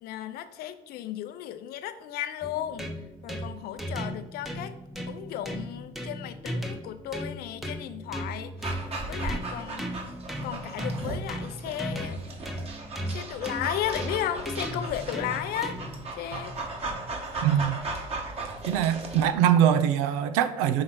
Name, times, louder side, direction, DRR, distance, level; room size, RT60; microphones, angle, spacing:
voice 1, 0.0-2.9 3.2-4.8 5.1-8.8 9.1-9.9 10.4-12.2 13.1-15.8 16.2-16.5, left 11 dB, 65° left, 0.6 m, -34 dB
sound 1, 2.4-16.1, equal, ahead, 0.9 m, -36 dB
Dog, 8.6-19.3, right 3 dB, 35° right, 1.4 m, -37 dB
voice 2, 17.4-17.8 18.7-20.8, right 9 dB, 85° right, 0.5 m, -23 dB
5.7 x 3.3 x 5.7 m
supercardioid pair, 80°, 17 cm